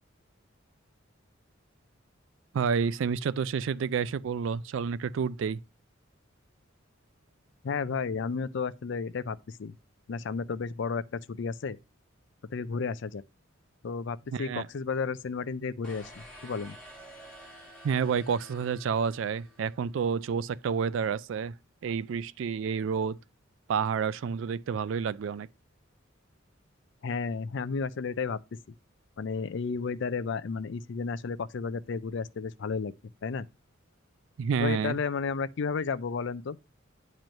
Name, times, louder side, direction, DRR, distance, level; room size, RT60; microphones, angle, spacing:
voice 1, 2.5-5.6 14.3-14.7 17.8-21.5 21.8-23.2 23.7-25.5 34.4-35.0, right 6 dB, 65° right, 0.3 m, -29 dB
voice 2, 7.6-9.8 10.1-11.8 12.5-13.2 13.8-16.1 16.4-16.8 27.0-28.4 29.2-32.9 33.2-33.5 34.6-36.6, left 5 dB, 60° left, 0.4 m, -32 dB
sound 1, 15.8-20.0, equal, 5° left, 1.9 m, -50 dB
9.0 x 3.1 x 5.1 m
head